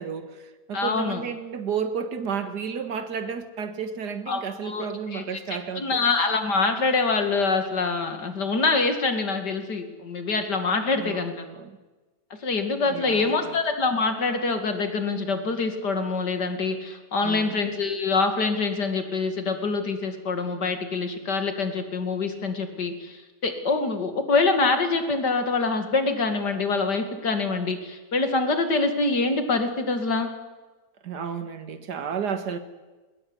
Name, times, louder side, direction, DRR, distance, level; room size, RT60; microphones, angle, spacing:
voice 1, 0.0-6.1 10.9-11.7 12.9-13.6 17.2-17.6 31.0-32.6, right 6 dB, 75° right, 9 dB, 2.2 m, -32 dB
voice 2, 0.7-1.2 4.3-5.2 5.8-11.3 12.4-30.3, left 3 dB, 80° left, 7 dB, 3.0 m, -25 dB
20.5 x 19.5 x 10.0 m, 1.2 s
omnidirectional pair, 1.8 m